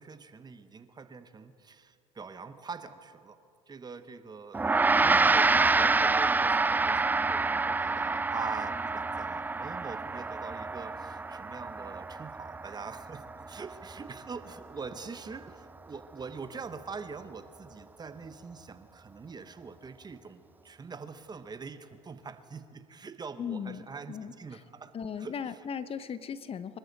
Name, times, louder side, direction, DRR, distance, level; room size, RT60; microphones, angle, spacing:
voice 1, 0.0-3.4 3.7-4.6 5.0-25.3, right 5 dB, 30° right, 11 dB, 1.0 m, -43 dB
Gong, 4.5-14.2, right 3 dB, 10° right, 0.3 m, -27 dB
voice 2, 23.4-24.6 24.9-26.8, left 7 dB, 40° left, 14 dB, 0.7 m, -38 dB
25.0 x 13.5 x 4.1 m, 2.4 s
supercardioid pair, 75°, 15 cm